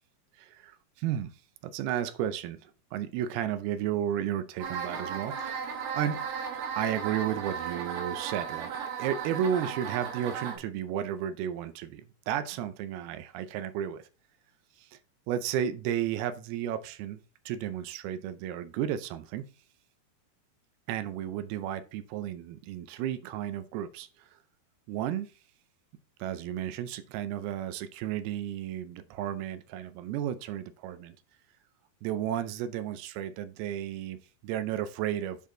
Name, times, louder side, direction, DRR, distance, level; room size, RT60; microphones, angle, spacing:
voice 1, 0.4-1.3 1.6-6.3 6.8-8.7 9.0-14.1 14.8-15.0 15.3-17.2 17.5-19.5 20.9-24.4 24.9-25.3 26.2-31.2 32.0-35.5, right 10 dB, 85° right, 2.5 m, -33 dB
sound 1, 4.6-10.6, right 7 dB, 65° right, 2.9 m, -35 dB
10.0 x 4.2 x 3.7 m
omnidirectional pair, 4.5 m